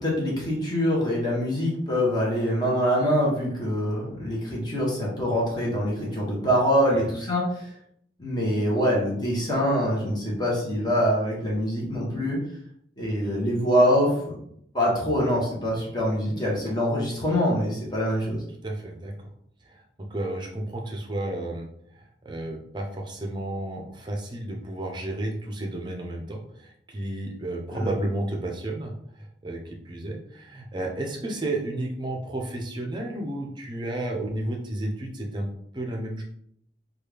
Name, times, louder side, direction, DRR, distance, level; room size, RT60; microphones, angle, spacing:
voice 1, 0.0-7.7 8.2-12.4 13.0-14.4 14.7-18.4 27.7-27.9, equal, 25° left, -5 dB, 0.9 m, -24 dB
voice 2, 18.6-19.1 19.7-19.8 20.1-21.7 21.9-35.5 35.7-36.2, right 1 dB, 25° right, 1 dB, 0.5 m, -32 dB
3.2 x 2.3 x 3.3 m, 0.70 s
head